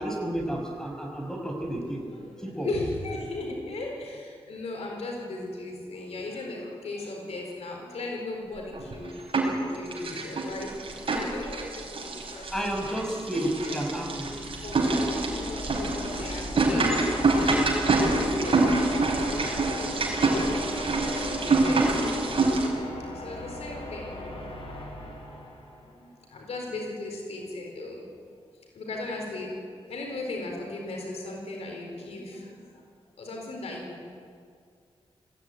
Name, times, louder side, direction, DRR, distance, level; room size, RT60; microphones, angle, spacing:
voice 1, 0.0-2.0 2.4-2.7 12.5-14.3, right 1 dB, 5° left, 1 dB, 5.5 m, -31 dB
voice 2, 1.6-12.9 13.3-13.8 14.6-17.0 17.3-22.0 23.1-24.3 24.8-24.9 25.8-28.0 28.7-29.6 29.8-32.8 33.2-34.1, left 2 dB, 90° left, 0 dB, 4.4 m, -37 dB
sound 1, 8.7-9.6 9.9-22.7, right 3 dB, 60° right, 5.2 m, -26 dB
sound 2, 13.0-26.1, left 2 dB, 60° left, 5.0 m, -39 dB
20.5 x 15.5 x 9.5 m, 2.2 s
cardioid pair, 75°, 10 cm